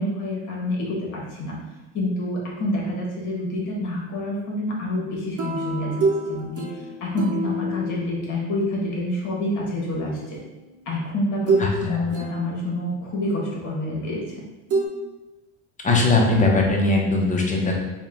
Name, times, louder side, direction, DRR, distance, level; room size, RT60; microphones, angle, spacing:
voice 1, 0.0-1.6 1.9-6.0 6.3-10.4 10.8-14.2, left 1 dB, 55° left, -4 dB, 1.4 m, -27 dB
sound 1, 5.4-9.0 10.3-10.5 11.5-11.8 12.1-13.0 14.7-14.9, right 2 dB, 40° right, 0.9 m, -27 dB
voice 2, 11.6-12.0 15.8-17.8, left 2 dB, 20° left, 0 dB, 0.8 m, -20 dB
4.3 x 2.3 x 3.5 m, 1.1 s
supercardioid pair, 105°, 36 cm